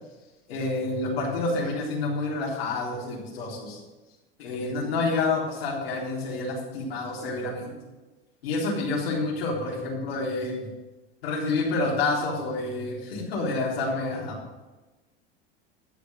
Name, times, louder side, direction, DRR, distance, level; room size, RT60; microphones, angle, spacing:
voice 1, 0.5-3.8 4.4-7.7 8.4-10.7 11.2-14.4, left 3 dB, 85° left, -4 dB, 3.7 m, -28 dB
12.0 x 5.1 x 7.7 m, 1.2 s
supercardioid pair, 110°, 30 cm